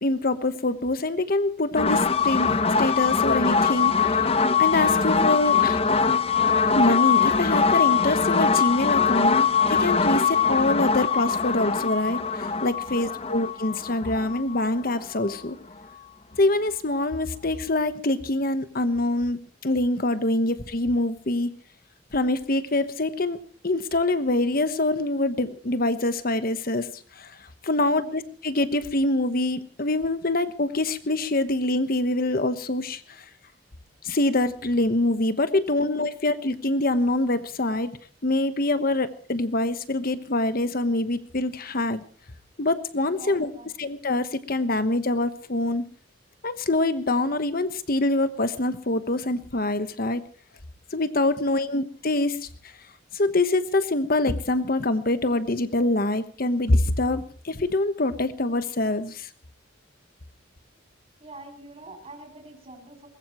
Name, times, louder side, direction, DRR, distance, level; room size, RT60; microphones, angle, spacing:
voice 1, 0.0-5.8 6.8-15.6 16.4-21.5 22.1-23.4 23.6-33.3 34.0-37.9 38.2-42.0 42.6-43.5 43.8-45.8 46.4-50.2 50.9-52.7 53.1-59.3, left 2 dB, 50° left, 11 dB, 1.2 m, -25 dB
sound 1, 1.8-15.4, left 5 dB, 30° left, 0.8 m, -22 dB
voice 2, 12.9-13.4 27.8-28.2 33.1-33.2 43.1-44.0 61.2-63.1, right 2 dB, 30° right, 2 dB, 7.7 m, -45 dB
22.5 x 20.5 x 3.1 m, 0.41 s
head